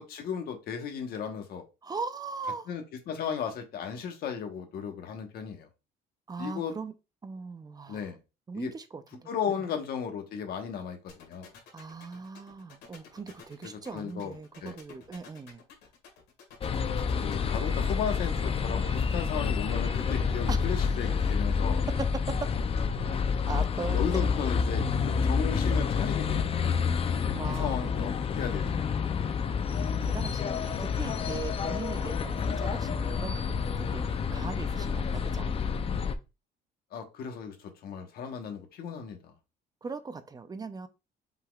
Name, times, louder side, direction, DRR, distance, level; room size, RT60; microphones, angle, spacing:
voice 1, 0.0-1.6 2.7-5.7 6.4-6.7 7.9-8.2 8.5-8.7 9.3-11.5 13.9-14.3 14.6-14.8 17.2-21.8 23.9-26.4 26.7-26.8 27.0-28.9 36.9-39.3, left 7 dB, 65° left, 1.2 m, -35 dB
voice 2, 1.8-2.7 6.3-6.9 7.2-8.1 8.5-9.3 11.7-15.6 20.5-20.6 22.3-22.5 23.5-24.3 27.4-28.0 28.6-28.9 30.0-35.6 39.8-40.9, right 4 dB, 25° right, 0.5 m, -39 dB
sound 1, 11.1-18.4, left 7 dB, 80° left, 2.0 m, -51 dB
sound 2, 16.6-36.1, left 6 dB, 35° left, 0.5 m, -29 dB
5.7 x 3.7 x 2.4 m
cardioid pair, 110°, 17 cm